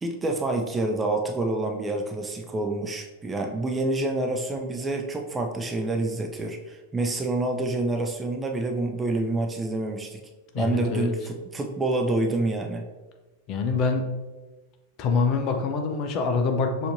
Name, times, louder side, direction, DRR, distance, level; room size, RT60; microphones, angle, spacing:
voice 1, 0.0-10.2 10.6-12.8, right 2 dB, 15° right, 3 dB, 0.4 m, -27 dB
voice 2, 10.5-11.1 13.5-14.1 15.0-16.9, left 4 dB, 40° left, 4 dB, 0.6 m, -25 dB
6.6 x 2.8 x 2.6 m, 1.2 s
figure-of-eight pair, 90°, 0 cm